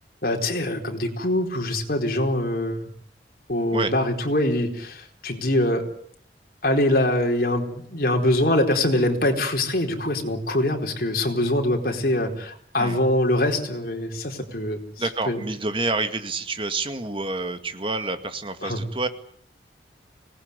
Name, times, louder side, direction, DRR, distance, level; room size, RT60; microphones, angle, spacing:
voice 1, 0.2-2.8 3.5-5.9 6.6-14.8 15.3-15.4 18.6-18.8, left 1 dB, 55° left, 3 dB, 4.3 m, -23 dB
voice 2, 15.0-19.1, right 3 dB, 30° right, 8 dB, 2.2 m, -28 dB
25.0 x 19.5 x 9.8 m, 0.64 s
head